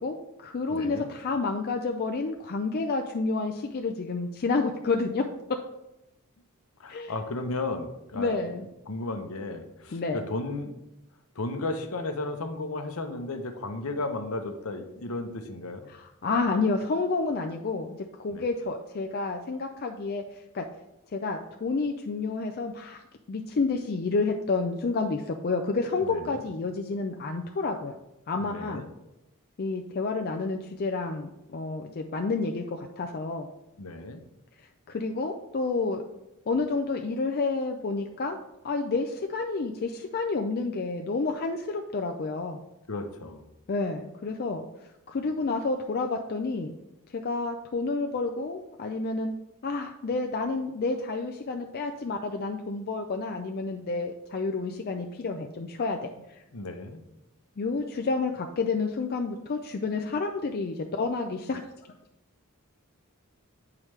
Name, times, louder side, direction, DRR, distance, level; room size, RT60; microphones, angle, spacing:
voice 1, 0.0-5.2 6.9-7.1 8.2-8.7 9.9-10.3 15.9-20.2 20.5-20.7 21.1-23.0 23.3-28.0 28.3-28.8 29.6-33.5 34.9-36.0 36.5-42.6 43.7-44.6 45.1-46.7 47.1-49.3 49.6-56.1 57.6-61.6, left 3 dB, 45° left, 4 dB, 0.4 m, -29 dB
voice 2, 0.7-1.1 6.8-8.5 8.9-10.7 11.4-15.9 18.3-18.4 26.0-26.4 28.4-28.9 33.8-34.2 42.9-43.4 56.5-57.0, left 2 dB, 70° left, 6 dB, 0.8 m, -34 dB
8.8 x 4.8 x 3.2 m, 0.92 s
head